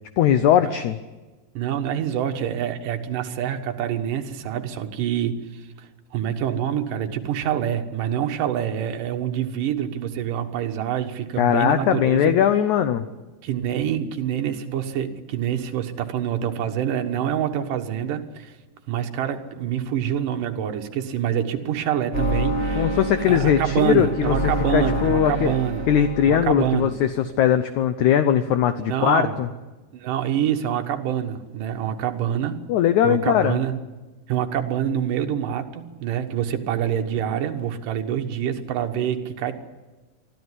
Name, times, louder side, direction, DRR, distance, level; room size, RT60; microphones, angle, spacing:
voice 1, 0.2-1.0 11.4-13.0 22.8-24.4 24.7-25.5 25.9-29.5 32.7-33.6, left 9 dB, 85° left, 10 dB, 1.6 m, -20 dB
voice 2, 1.5-12.3 13.4-18.6 18.9-22.9 23.3-25.9 26.2-26.9 28.8-29.4 29.9-32.6 33.0-33.7 34.3-39.5, right 9 dB, 65° right, 5 dB, 2.7 m, -26 dB
sound 1, 22.1-27.0, equal, 15° left, 4.9 m, -28 dB
23.5 x 14.0 x 9.8 m, 1.2 s
omnidirectional pair, 4.5 m